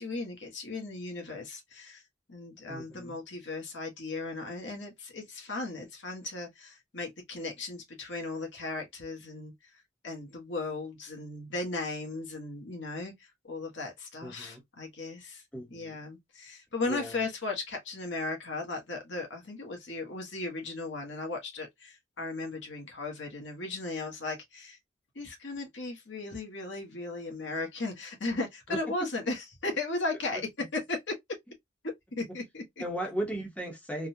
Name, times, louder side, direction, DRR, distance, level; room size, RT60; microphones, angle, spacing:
voice 1, 0.0-2.0 2.3-9.5 10.0-13.1 13.5-15.4 15.7-24.8 25.1-30.4 30.7-31.1 32.2-32.8, left 3 dB, 70° left, 1.2 m, -36 dB
voice 2, 2.7-3.2 14.2-14.6 15.5-16.0 16.8-17.3 32.8-34.1, right 1 dB, 5° left, 1.0 m, -36 dB
3.7 x 2.3 x 2.7 m
head